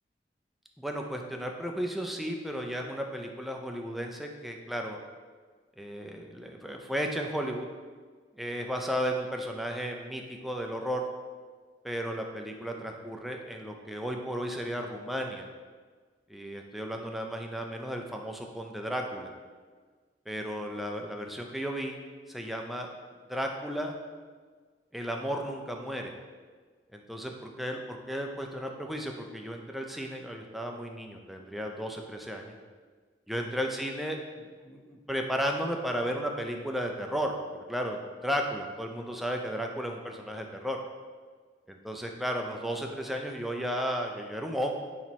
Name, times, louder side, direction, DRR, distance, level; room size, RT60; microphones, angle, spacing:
voice 1, 0.8-5.0 5.8-7.7 8.4-11.0 11.8-15.5 16.3-19.3 20.3-22.0 22.3-22.9 23.3-23.9 24.9-26.1 26.9-32.6 33.3-40.8 41.8-44.7, equal, ahead, 2 dB, 0.3 m, -34 dB
4.3 x 2.9 x 4.1 m, 1.5 s
head